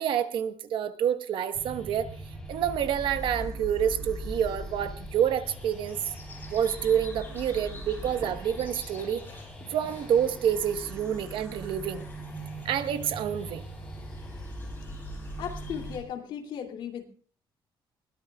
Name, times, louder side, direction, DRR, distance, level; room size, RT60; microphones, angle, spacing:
voice 1, 0.0-2.1 2.5-6.1 6.5-9.2 9.7-12.0 12.6-13.6, right 9 dB, 65° right, 9 dB, 1.2 m, -28 dB
sound 1, 1.5-16.0, right 1 dB, 10° left, 3.7 m, -40 dB
sound 2, 5.4-16.0, left 3 dB, 25° left, 6.3 m, -50 dB
voice 2, 15.4-17.1, left 8 dB, 65° left, 3 dB, 2.8 m, -36 dB
22.0 x 18.5 x 2.4 m, 0.43 s
cardioid pair, 165°, 9 cm